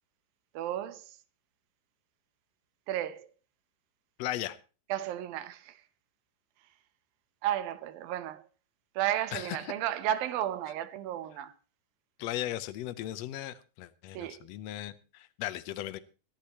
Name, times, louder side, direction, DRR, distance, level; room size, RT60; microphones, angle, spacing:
voice 1, 0.6-1.1 2.9-3.3 4.9-5.7 7.4-8.4 9.0-11.5 14.1-14.5, right 12 dB, 85° right, 2.7 m, -33 dB
voice 2, 4.2-4.6 9.3-9.6 12.2-16.0, left 14 dB, 80° left, 1.5 m, -37 dB
23.5 x 10.0 x 2.9 m
omnidirectional pair, 4.0 m